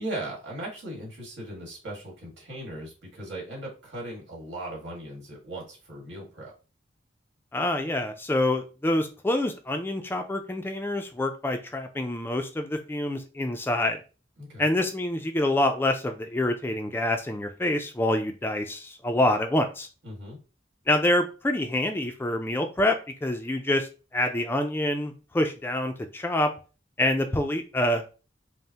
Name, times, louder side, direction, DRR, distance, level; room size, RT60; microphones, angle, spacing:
voice 1, 0.0-6.5 14.4-14.7 20.0-20.4, right 1 dB, 80° right, -3 dB, 1.8 m, -38 dB
voice 2, 7.5-14.0 14.6-19.9 20.9-23.9 24.1-26.5 27.0-28.1, left 1 dB, 10° left, 6 dB, 0.3 m, -26 dB
5.3 x 2.1 x 2.8 m, 0.34 s
head